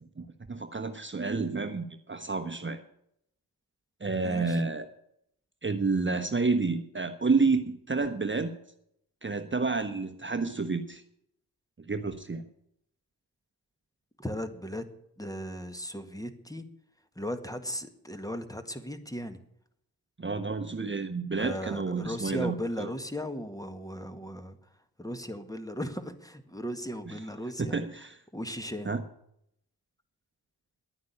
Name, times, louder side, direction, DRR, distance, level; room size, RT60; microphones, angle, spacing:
voice 1, 0.2-2.8 4.0-4.9 5.6-8.5 9.2-11.0 11.9-12.4 20.2-22.9 27.1-27.2 27.7-28.2 28.8-29.0, right 4 dB, 30° right, 7 dB, 1.1 m, -30 dB
voice 2, 4.2-4.6 14.2-14.8 15.2-16.7 17.2-19.4 21.4-24.6 25.0-27.8 28.3-28.9, equal, 10° left, 8 dB, 1.8 m, -37 dB
11.0 x 9.4 x 8.5 m, 0.75 s
supercardioid pair, 40°, 40 cm